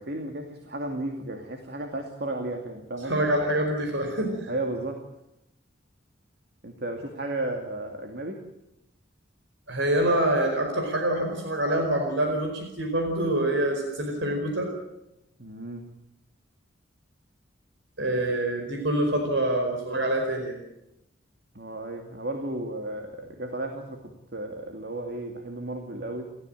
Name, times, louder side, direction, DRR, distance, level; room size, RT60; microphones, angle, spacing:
voice 1, 0.0-3.3 4.5-5.0 6.6-8.5 15.4-15.8 21.5-26.2, right 1 dB, 55° right, 4 dB, 2.4 m, -34 dB
voice 2, 3.0-4.5 9.7-14.7 18.0-20.6, right 1 dB, 70° right, 3 dB, 4.8 m, -26 dB
30.0 x 14.5 x 9.1 m, 0.87 s
head